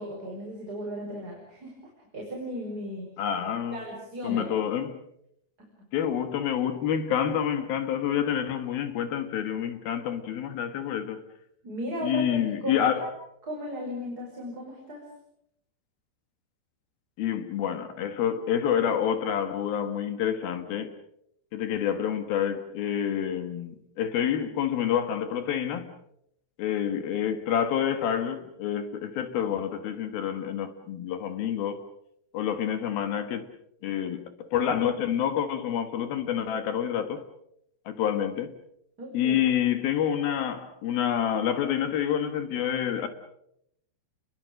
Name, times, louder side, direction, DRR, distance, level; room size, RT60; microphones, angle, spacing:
voice 1, 0.0-1.7 2.1-3.1 3.7-4.6 5.6-5.7 11.6-13.1 13.4-15.1 39.0-39.4, equal, 20° right, 5.6 m, -36 dB
voice 2, 3.2-3.8 4.2-5.0 5.9-11.2 12.0-13.1 17.2-20.9 21.5-25.9 26.6-31.8 32.3-33.5 33.8-37.2 37.9-38.6 39.1-43.1, left 9 dB, 65° left, 3.0 m, -28 dB
29.5 x 22.0 x 6.6 m
omnidirectional pair, 5.0 m